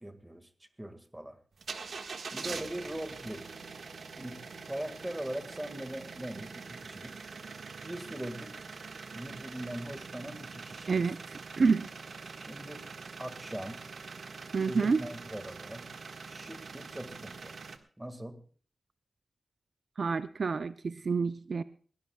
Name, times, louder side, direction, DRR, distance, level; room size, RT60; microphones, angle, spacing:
voice 1, 0.0-0.5 0.8-1.4 2.3-3.5 4.2-4.4 4.7-7.2 7.8-8.6 9.1-11.0 12.4-12.9 13.2-13.8 14.6-15.9 16.3-17.5 18.0-18.4, right 1 dB, 10° right, 9 dB, 1.9 m, -41 dB
sound 1, 1.6-17.8, right 4 dB, 75° right, 1.6 m, -44 dB
voice 2, 10.9-11.9 14.5-15.0 20.0-21.6, right 4 dB, 60° right, 12 dB, 0.6 m, -28 dB
21.5 x 18.0 x 2.3 m, 0.44 s
wide cardioid pair, 135°, 0 cm